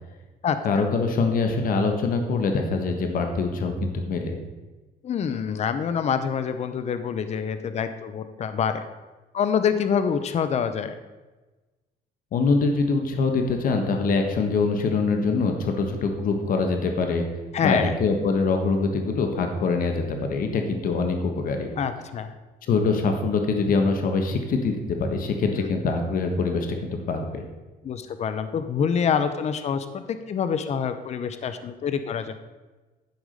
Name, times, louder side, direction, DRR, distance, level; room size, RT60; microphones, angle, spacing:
voice 1, 0.6-4.4 12.3-17.2 17.6-21.7 22.7-27.4, left 4 dB, 55° left, 4 dB, 1.4 m, -24 dB
voice 2, 5.0-8.8 9.3-10.9 17.5-17.9 21.8-22.3 25.5-25.7 27.8-32.3, left 7 dB, 40° left, 10 dB, 0.7 m, -26 dB
12.0 x 4.9 x 5.2 m, 1.2 s
cardioid pair, 110°, 17 cm